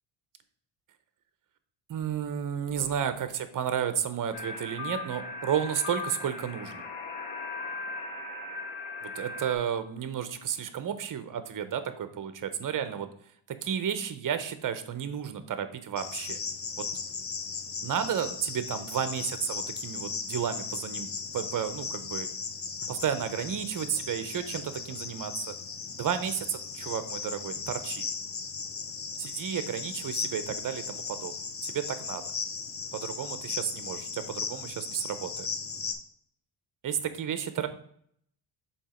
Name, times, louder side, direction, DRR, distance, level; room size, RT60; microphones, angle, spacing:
voice 1, 1.9-6.9 9.0-13.1 13.5-16.4 16.8-16.9 17.8-21.1 21.3-22.3 22.9-25.5 26.0-28.1 29.2-31.3 31.6-32.2 32.9-35.5 36.8-37.7, right 8 dB, 40° right, 11 dB, 0.6 m, -32 dB
sound 1, 4.3-9.6, left 3 dB, 80° left, 1.3 m, -38 dB
Cricket, 16.0-35.9, left 5 dB, 30° left, 0.5 m, -37 dB
7.1 x 2.9 x 4.9 m, 0.67 s
cardioid pair, 155°, 48 cm